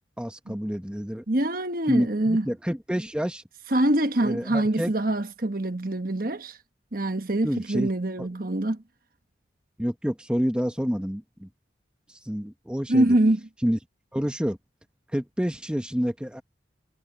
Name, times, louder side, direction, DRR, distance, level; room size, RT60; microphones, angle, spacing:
voice 1, 0.2-1.2 1.9-3.4 4.2-4.9 7.4-7.9 8.2-8.3 9.8-11.5 12.1-13.2 13.6-13.8 14.1-14.6 15.1-16.4, equal, 5° right, 1.0 m, -28 dB
voice 2, 1.3-2.5 3.7-6.6 6.9-8.8 12.9-13.4, right 1 dB, 50° right, 1.3 m, -24 dB
head